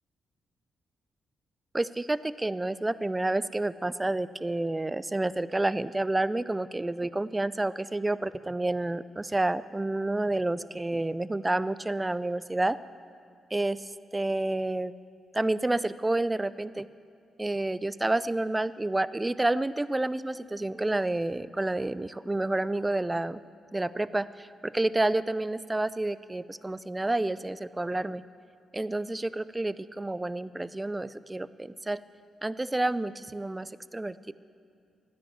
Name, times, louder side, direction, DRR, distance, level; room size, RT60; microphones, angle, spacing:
voice 1, 1.7-12.8 13.5-14.9 15.3-16.9 17.4-23.4 23.7-28.2 28.7-32.0 32.4-34.3, right 2 dB, 20° right, 16 dB, 0.5 m, -29 dB
13.0 x 9.9 x 7.2 m, 2.5 s
supercardioid pair, 50°, 0 cm